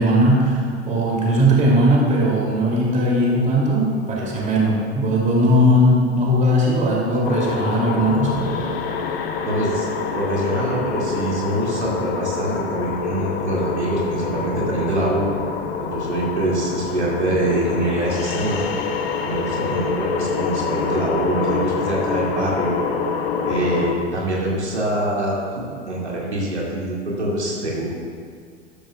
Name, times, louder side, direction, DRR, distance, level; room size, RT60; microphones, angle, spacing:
voice 1, 0.0-8.4, equal, 20° right, -3 dB, 2.8 m, -18 dB
sound 1, 7.2-23.9, left 5 dB, 60° left, 1.0 m, -26 dB
voice 2, 9.4-9.9 10.1-15.3 15.8-18.6 19.2-22.7 23.4-27.9, right 1 dB, 80° right, -4 dB, 2.4 m, -24 dB
13.0 x 12.5 x 2.4 m, 2.2 s
figure-of-eight pair, 85°, 33 cm